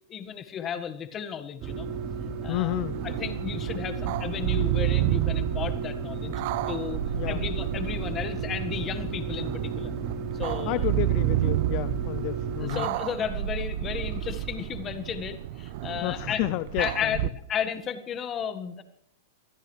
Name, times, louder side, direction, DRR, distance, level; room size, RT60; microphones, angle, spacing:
voice 1, 0.1-1.9 2.4-2.8 3.0-6.3 6.7-7.0 7.3-9.9 10.4-10.9 12.6-16.4 16.8-18.8, left 8 dB, 25° left, 9 dB, 1.6 m, -33 dB
sound 1, 1.6-12.7, right 5 dB, 40° right, 4.0 m, -34 dB
voice 2, 2.5-3.0 7.1-7.4 10.7-12.9 16.0-17.2, left 18 dB, 50° left, 15 dB, 0.6 m, -31 dB
sound 2, 2.7-17.3, right 14 dB, 55° right, 0.7 m, -31 dB
24.5 x 15.5 x 3.3 m, 0.72 s
hypercardioid pair, 130°, 0 cm